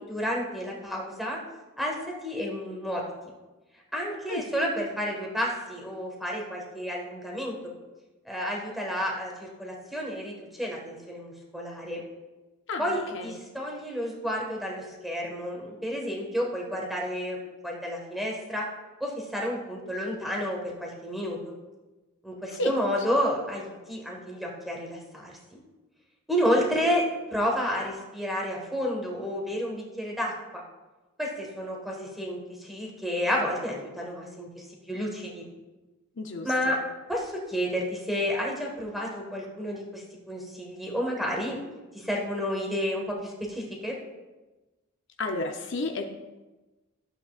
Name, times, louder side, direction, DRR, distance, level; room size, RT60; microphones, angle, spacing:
voice 1, 0.1-1.4 1.8-2.0 2.2-3.0 3.9-7.5 8.2-12.0 12.8-17.4 17.6-18.7 19.0-21.5 22.2-25.6 26.3-27.0 27.3-30.3 31.2-35.5 36.4-36.8 37.1-41.6 41.9-44.0, equal, ahead, -2 dB, 1.5 m, -30 dB
voice 2, 12.7-13.4 22.6-22.7 26.5-26.8 36.2-36.8 45.2-46.0, left 2 dB, 55° left, 4 dB, 0.7 m, -32 dB
13.0 x 8.2 x 2.5 m, 1.1 s
head